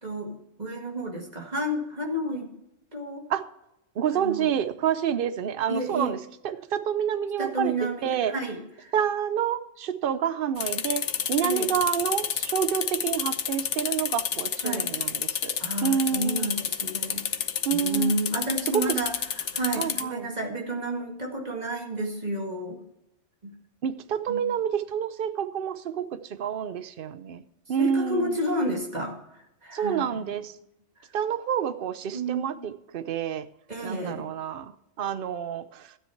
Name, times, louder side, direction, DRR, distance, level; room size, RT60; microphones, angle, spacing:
voice 1, 0.0-2.5 2.9-3.2 4.1-4.5 5.7-6.2 7.4-8.9 11.4-11.7 14.6-14.9 15.6-17.2 17.7-22.8 23.4-23.5 24.3-24.4 27.8-29.1 29.6-30.3 32.1-32.6 33.7-34.3, right 1 dB, 35° right, 1 dB, 2.0 m, -31 dB
voice 2, 4.0-6.2 6.4-8.3 8.9-11.0 11.3-15.6 15.8-16.5 17.6-18.1 18.7-18.8 19.7-20.3 23.8-27.4 27.7-28.3 29.7-30.5 31.1-33.5 33.8-35.9, right 8 dB, 55° right, 12 dB, 0.8 m, -28 dB
sound 1, 10.6-20.0, left 8 dB, 70° left, 1.1 m, -30 dB
12.5 x 9.7 x 4.6 m, 0.83 s
omnidirectional pair, 1.3 m